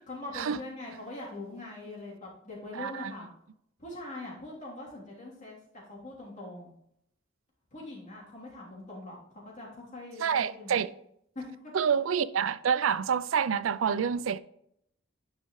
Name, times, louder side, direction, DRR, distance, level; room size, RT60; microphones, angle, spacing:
voice 1, 0.0-3.3 3.8-5.6 5.9-6.7 7.7-9.2 9.5-10.8 11.3-11.7, left 2 dB, 40° left, 3.3 m, -42 dB
voice 2, 2.8-3.1 10.2-10.9 11.7-14.4, right 7 dB, 90° right, 0.4 m, -27 dB
10.5 x 5.4 x 3.1 m
head